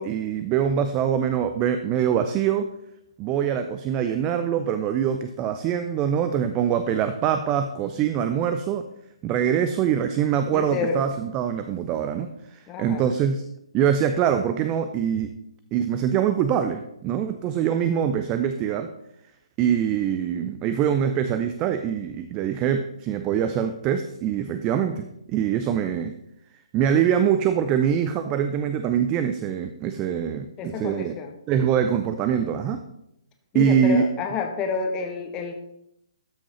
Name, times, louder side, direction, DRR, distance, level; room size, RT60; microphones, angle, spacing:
voice 1, 0.0-2.7 3.2-8.9 9.2-13.4 13.7-15.3 15.7-18.9 19.6-26.1 26.7-31.1 31.5-32.8 33.5-34.0, right 8 dB, 20° right, 9 dB, 0.4 m, -24 dB
voice 2, 10.5-11.0 12.7-13.1 30.6-31.3 33.5-35.5, left 5 dB, 20° left, 5 dB, 1.1 m, -29 dB
13.0 x 6.1 x 3.0 m, 0.79 s
figure-of-eight pair, 135°, 3 cm